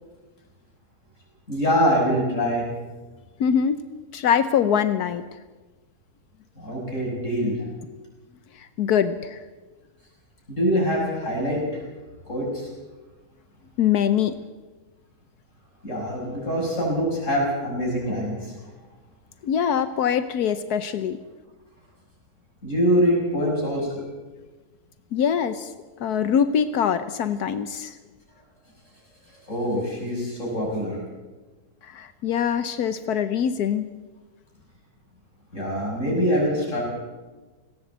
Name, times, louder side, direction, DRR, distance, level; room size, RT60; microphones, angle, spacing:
voice 1, 1.5-2.6 6.6-7.7 10.5-11.8 12.3-12.7 15.8-18.5 22.6-24.0 29.5-31.0 35.5-36.8, equal, 50° left, -2 dB, 6.6 m, -24 dB
voice 2, 3.4-3.8 4.1-5.2 8.5-9.4 13.8-14.4 19.4-21.2 25.1-25.7 26.0-28.0 31.8-33.9, left 8 dB, 80° left, 12 dB, 1.4 m, -23 dB
18.0 x 18.0 x 8.1 m, 1.2 s
omnidirectional pair, 1.7 m